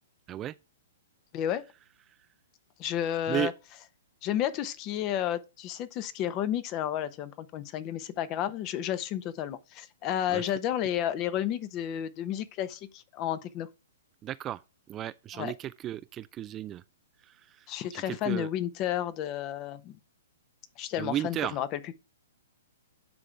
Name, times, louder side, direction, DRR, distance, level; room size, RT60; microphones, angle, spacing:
voice 1, 1.3-1.7 2.8-3.5 4.2-13.7 15.3-15.5 17.7-20.0 20.8-21.9, left 11 dB, 35° left, 0.9 m, -31 dB
voice 2, 14.2-14.6 14.9-16.8 17.9-18.5 21.0-21.6, right 12 dB, 25° right, 0.3 m, -34 dB
9.6 x 3.8 x 4.5 m
hypercardioid pair, 125°, 0 cm